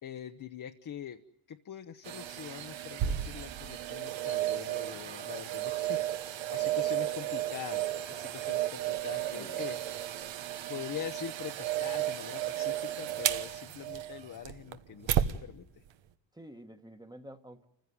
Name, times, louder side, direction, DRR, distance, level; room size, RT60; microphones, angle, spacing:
voice 1, 0.0-10.1 10.7-15.8, left 9 dB, 45° left, 7 dB, 0.9 m, -44 dB
sound 1, 2.0-15.4 15.9-16.0, right 12 dB, 85° right, 1.3 m, -33 dB
voice 2, 9.3-9.6 16.3-17.7, right 1 dB, 10° right, 7 dB, 1.2 m, -49 dB
29.0 x 15.5 x 9.4 m, 0.82 s
cardioid pair, 125°, 45 cm